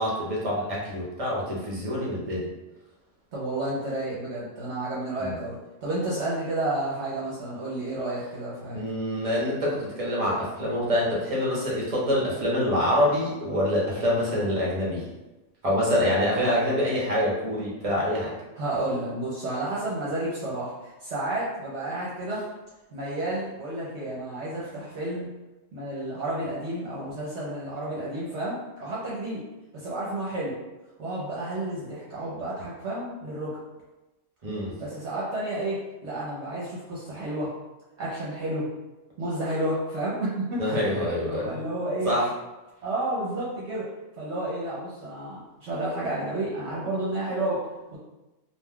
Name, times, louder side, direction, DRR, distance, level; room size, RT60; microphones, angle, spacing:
voice 1, 0.0-2.5 5.2-5.3 8.7-15.1 15.6-18.3 34.4-34.7 40.6-41.6 42.0-42.3, equal, 35° right, -5 dB, 0.8 m, -26 dB
voice 2, 3.3-8.8 18.5-22.4 22.9-25.3 25.7-29.4 29.7-30.6 31.0-33.6 34.8-37.5 38.0-38.7 39.2-40.6 41.2-42.2 42.8-43.9 44.2-48.0, right 1 dB, 65° right, -7 dB, 0.9 m, -31 dB
2.4 x 2.2 x 3.5 m, 1.0 s
omnidirectional pair, 1.3 m